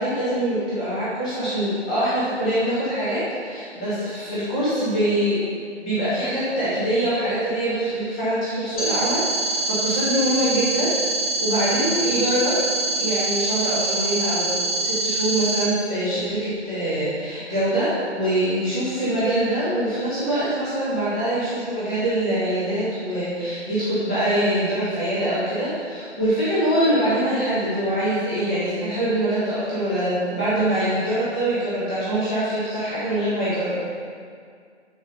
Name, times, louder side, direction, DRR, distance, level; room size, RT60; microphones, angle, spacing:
voice 1, 0.0-10.9 11.4-12.6 13.0-33.8, right 1 dB, 5° left, -12 dB, 0.7 m, -24 dB
sound 1, 8.8-15.6, right 2 dB, 30° left, 1.3 m, -25 dB
10.5 x 4.1 x 5.2 m, 2.1 s
figure-of-eight pair, 145°, 36 cm